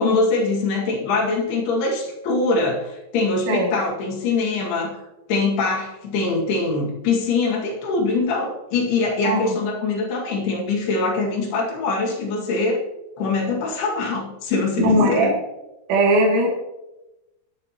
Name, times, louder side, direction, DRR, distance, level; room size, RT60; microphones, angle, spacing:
voice 1, 0.0-5.0 5.3-12.8 13.2-15.3, left 3 dB, 60° left, -2 dB, 3.8 m, -23 dB
voice 2, 9.2-9.5 14.8-15.3 15.9-16.5, right 1 dB, 75° right, -4 dB, 4.9 m, -18 dB
20.0 x 7.6 x 3.0 m, 0.95 s
omnidirectional pair, 5.5 m